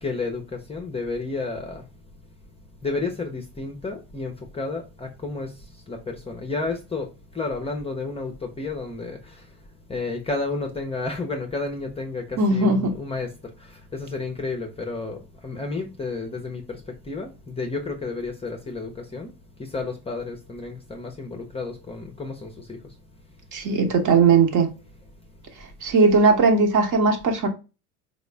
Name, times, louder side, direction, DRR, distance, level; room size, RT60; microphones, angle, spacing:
voice 1, 0.0-1.9 2.8-9.5 9.9-19.3 19.6-22.9 24.3-24.4, left 3 dB, 15° left, 0.6 m, -31 dB
voice 2, 12.4-12.9 23.5-24.7 25.8-27.5, right 4 dB, 45° right, 1.0 m, -18 dB
4.0 x 2.1 x 3.3 m
hypercardioid pair, 85°, 44 cm